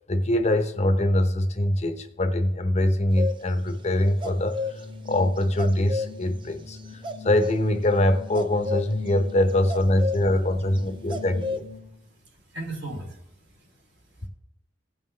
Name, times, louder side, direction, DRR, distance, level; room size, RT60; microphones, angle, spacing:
voice 1, 0.1-11.6, left 1 dB, 40° left, 8 dB, 0.8 m, -23 dB
sound 1, 3.2-3.4 4.2-6.1 7.0-7.6 8.3-9.1 9.5-10.3 10.8-10.9 11.1-11.6, left 3 dB, 25° right, 0.6 m, -30 dB
sound 2, 3.5-12.1, left 4 dB, 50° right, 2.3 m, -43 dB
voice 2, 11.8-14.3, right 2 dB, 70° right, 0 dB, 2.7 m, -40 dB
16.5 x 5.5 x 3.2 m, 0.77 s
head